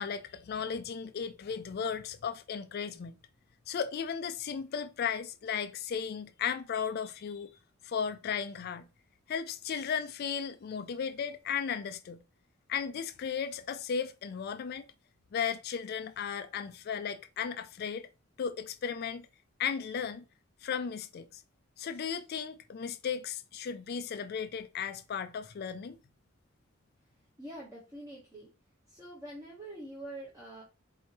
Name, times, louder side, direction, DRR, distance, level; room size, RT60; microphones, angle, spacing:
voice 1, 0.0-3.1 3.7-7.5 7.8-8.9 9.3-12.2 12.7-14.9 15.3-18.1 18.4-19.3 19.6-20.2 20.6-21.4 21.8-26.0, left 7 dB, 50° left, 0.4 m, -35 dB
voice 2, 27.4-28.5 28.9-30.6, right 1 dB, 15° right, 1.1 m, -45 dB
4.5 x 2.7 x 3.0 m
head